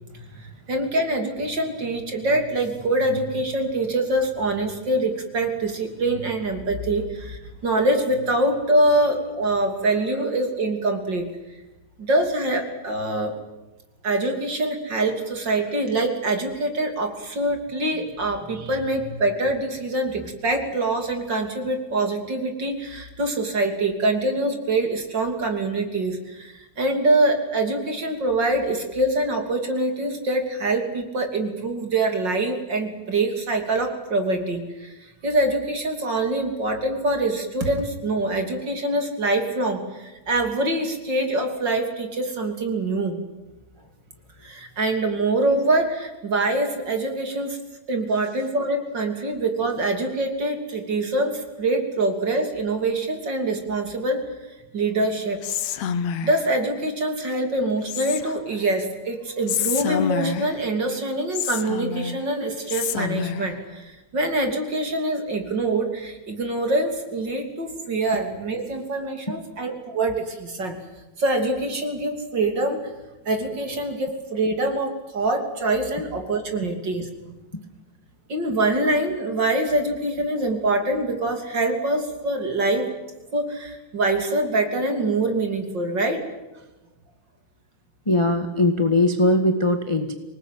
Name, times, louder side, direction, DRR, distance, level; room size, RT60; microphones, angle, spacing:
voice 1, 0.3-11.3 12.0-13.3 14.0-43.2 44.4-47.6 47.9-54.2 54.7-55.4 56.2-70.8 71.2-72.8 73.3-77.3 78.3-82.9 83.3-86.2, right 2 dB, 35° right, 5 dB, 3.5 m, -24 dB
Whispering, 55.4-56.5 57.9-58.6 59.5-60.7 61.3-62.3 62.7-63.5, left 8 dB, 70° left, 2.3 m, -28 dB
voice 2, 88.0-90.1, left 1 dB, 15° left, 6 dB, 1.3 m, -21 dB
26.5 x 19.5 x 9.3 m, 1.1 s
omnidirectional pair, 3.4 m